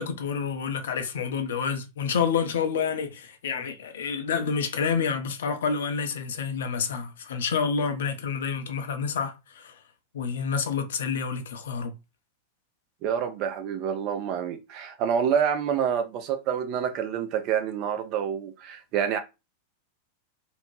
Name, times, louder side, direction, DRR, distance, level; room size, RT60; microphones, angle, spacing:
voice 1, 0.0-9.7 10.1-11.9, left 6 dB, 60° left, 0.5 m, -28 dB
voice 2, 13.0-19.2, right 8 dB, 40° right, 0.5 m, -27 dB
2.5 x 2.1 x 3.0 m
figure-of-eight pair, 90°, 0 cm